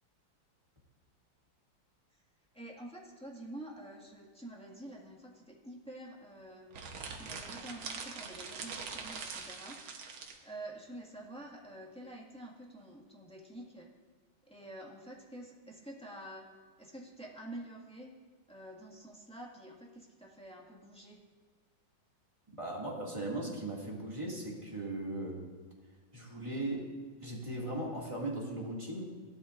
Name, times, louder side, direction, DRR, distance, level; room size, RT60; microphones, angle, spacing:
voice 1, 2.5-6.7 7.2-9.8 10.4-13.9 14.5-16.5 16.8-18.1 18.5-21.2, right 1 dB, 5° left, -4 dB, 1.6 m, -48 dB
sound 1, 6.7-10.4, right 5 dB, 80° right, 1.9 m, -43 dB
voice 2, 22.6-25.4 26.1-26.9 27.2-29.0, right 1 dB, 15° right, -4 dB, 2.3 m, -38 dB
17.5 x 12.5 x 2.6 m, 1.5 s
omnidirectional pair, 2.2 m